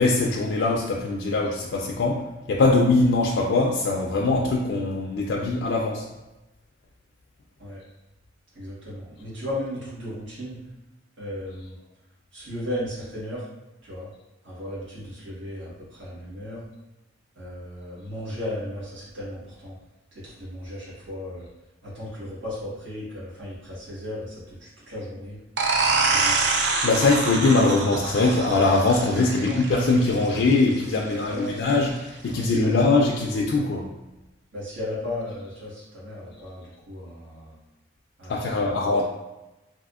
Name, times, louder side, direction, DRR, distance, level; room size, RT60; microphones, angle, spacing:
voice 1, 0.0-6.1 26.8-33.9 38.3-39.0, left 3 dB, 65° left, -1 dB, 0.3 m, -22 dB
voice 2, 8.5-10.6 11.2-11.8 12.3-13.4 13.8-14.1 14.4-16.6 17.3-19.8 20.1-21.5 21.8-25.4 25.7-26.5 29.4-29.6 31.1-31.7 32.3-32.7 34.5-37.6 38.2-39.0, left 1 dB, 80° right, -9 dB, 1.3 m, -35 dB
sound 1, 25.6-31.0, right 4 dB, 60° right, 0.4 m, -26 dB
3.4 x 2.5 x 2.4 m, 1.0 s
head